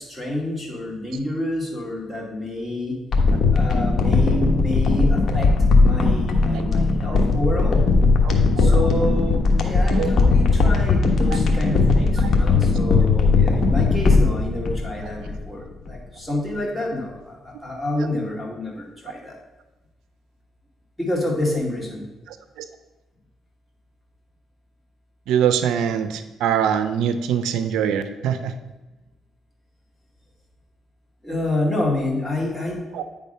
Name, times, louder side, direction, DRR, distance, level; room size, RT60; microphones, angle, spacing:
voice 1, 0.0-3.0 3.5-5.5 5.8-7.8 8.6-19.4 21.0-22.1 31.2-32.9, left 1 dB, 5° left, -3 dB, 2.3 m, -28 dB
sound 1, 3.1-15.6 15.9-16.0, left 3 dB, 55° left, 1.2 m, -18 dB
voice 2, 8.2-8.8 10.0-10.2 11.3-11.4 12.2-12.3 15.0-15.1 18.0-18.1 25.3-28.5 32.9-33.0, right 8 dB, 90° right, 10 dB, 0.5 m, -23 dB
9.5 x 3.6 x 5.5 m, 1.1 s
cardioid pair, 90°, 0 cm